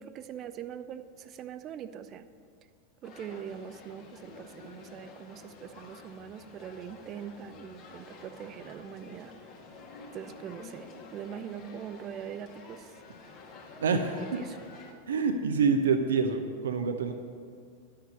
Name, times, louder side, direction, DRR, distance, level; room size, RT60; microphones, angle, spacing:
voice 1, 0.0-2.3 3.0-9.3 10.1-13.0 13.9-14.6, right 8 dB, 30° right, 11 dB, 0.6 m, -42 dB
sound 1, 3.0-14.9, left 3 dB, 40° left, 1.8 m, -50 dB
voice 2, 13.8-14.2 15.1-17.1, right 5 dB, 65° right, 7 dB, 0.7 m, -26 dB
11.0 x 6.6 x 7.9 m, 2.1 s
figure-of-eight pair, 90°, 0 cm